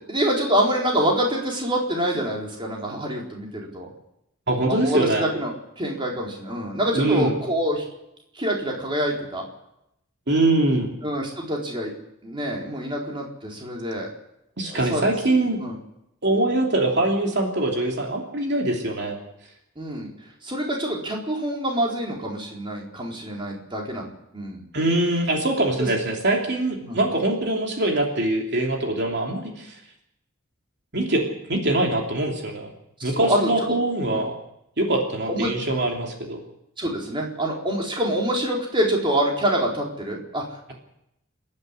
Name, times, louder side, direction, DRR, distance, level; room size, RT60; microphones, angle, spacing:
voice 1, 0.1-3.9 4.7-7.8 8.3-9.4 11.0-11.9 12.2-14.1 14.6-15.0 15.6-15.8 19.8-20.1 20.4-24.6 25.8-25.9 26.8-27.0 33.1-33.5 35.3-35.5 36.8-40.4, equal, 25° right, -1 dB, 4.2 m, -26 dB
voice 2, 4.5-5.2 6.9-7.3 10.3-10.9 14.6-15.6 16.2-19.2 24.7-29.8 30.9-32.7 33.0-34.4 34.8-36.4, right 2 dB, 55° right, 0 dB, 3.0 m, -23 dB
27.5 x 10.5 x 9.9 m, 0.82 s
head